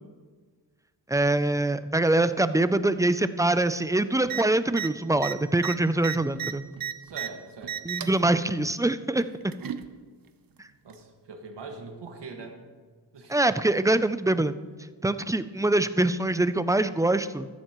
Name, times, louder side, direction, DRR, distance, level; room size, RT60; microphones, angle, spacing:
voice 1, 1.1-6.6 7.9-9.5 13.3-14.5 15.0-17.5, right 2 dB, 10° right, 12 dB, 0.3 m, -24 dB
sound 1, 4.2-4.4 4.7-4.9 5.2-7.3 7.6-8.2 9.2-9.9 10.9-11.0, right 9 dB, 55° right, 0.7 m, -33 dB
voice 2, 7.0-7.9 10.8-12.6 13.1-13.4, right 4 dB, 80° right, 3 dB, 1.8 m, -42 dB
14.0 x 14.0 x 3.0 m, 1.4 s
wide cardioid pair, 110°, 42 cm